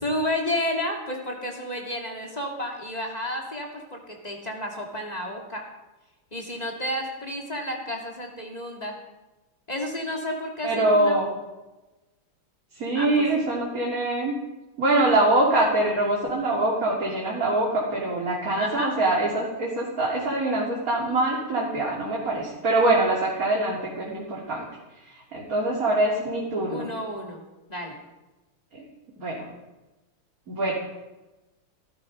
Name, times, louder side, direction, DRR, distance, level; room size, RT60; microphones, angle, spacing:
voice 1, 0.0-5.6 6.3-9.0 9.7-11.2 12.9-13.3 18.6-18.9 26.7-27.4 27.7-28.0, left 1 dB, 20° left, 0 dB, 2.7 m, -31 dB
voice 2, 10.6-11.3 12.7-14.4 14.8-24.7 25.0-26.9 28.7-28.8 29.2-29.4 30.5-30.7, right 2 dB, 40° right, -3 dB, 3.3 m, -24 dB
17.0 x 14.5 x 5.3 m, 1.1 s
omnidirectional pair, 2.4 m